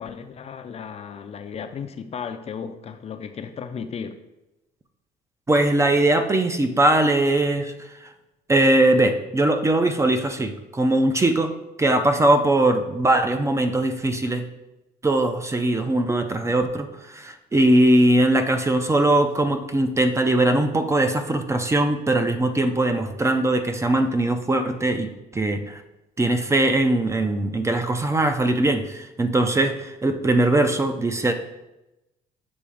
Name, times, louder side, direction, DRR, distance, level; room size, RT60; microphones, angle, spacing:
voice 1, 0.0-4.2, left 6 dB, 40° left, 8 dB, 0.5 m, -35 dB
voice 2, 5.5-7.7 8.0-8.1 8.5-11.5 11.8-14.4 15.0-25.8 26.2-31.3, right 1 dB, 15° right, 7 dB, 0.5 m, -21 dB
7.0 x 3.1 x 4.9 m, 0.96 s
cardioid pair, 110°, 17 cm